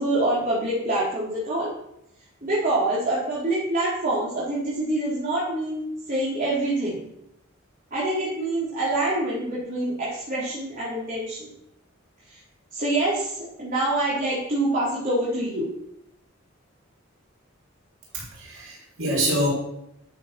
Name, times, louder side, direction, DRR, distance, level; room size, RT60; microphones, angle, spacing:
voice 1, 0.0-1.7 2.4-7.0 7.9-11.5 12.3-12.4 12.7-15.7, right 1 dB, 45° right, -8 dB, 4.6 m, -26 dB
voice 2, 18.1-19.5, right 1 dB, 75° right, -3 dB, 5.5 m, -26 dB
12.0 x 8.2 x 6.4 m, 0.80 s
head